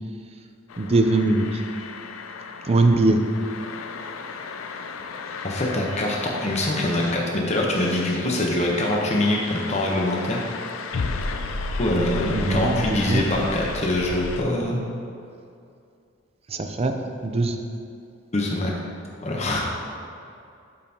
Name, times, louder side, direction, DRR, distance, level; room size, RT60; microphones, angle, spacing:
sound 1, 0.7-14.4, left 4 dB, 85° left, 0.5 m, -34 dB
voice 1, 0.8-1.6 2.6-3.2 12.3-13.3 16.5-16.9 17.2-17.6, right 2 dB, 30° right, 6 dB, 0.4 m, -21 dB
voice 2, 5.4-10.4 11.8-14.9 18.3-18.7 19.2-19.6, left 1 dB, 35° left, -2 dB, 0.8 m, -24 dB
12.0 x 5.5 x 2.8 m, 2.5 s
head